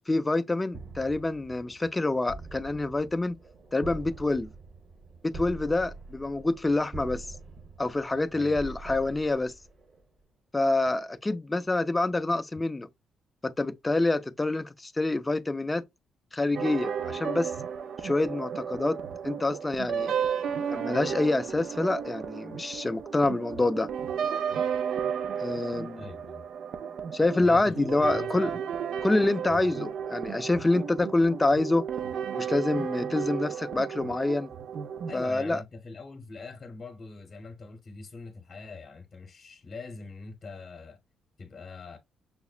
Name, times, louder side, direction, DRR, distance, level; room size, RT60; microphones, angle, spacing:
voice 1, 0.0-3.4 3.7-4.5 5.2-7.3 7.8-9.5 10.5-12.9 13.4-15.8 16.3-17.5 18.0-19.0 19.2-20.1 20.7-23.9 25.4-26.1 27.1-28.5 29.0-31.9 32.3-34.5 35.1-35.6, left 2 dB, 15° left, 0.3 m, -27 dB
sound 1, 0.7-10.2, right 3 dB, 45° right, 0.9 m, -45 dB
sound 2, 16.5-35.2, right 7 dB, 65° right, 0.5 m, -33 dB
voice 2, 26.0-26.4 27.4-28.6 29.5-29.6 35.1-41.0 41.4-42.0, left 4 dB, 40° left, 0.9 m, -43 dB
5.7 x 2.0 x 2.4 m
cardioid pair, 90°, 0 cm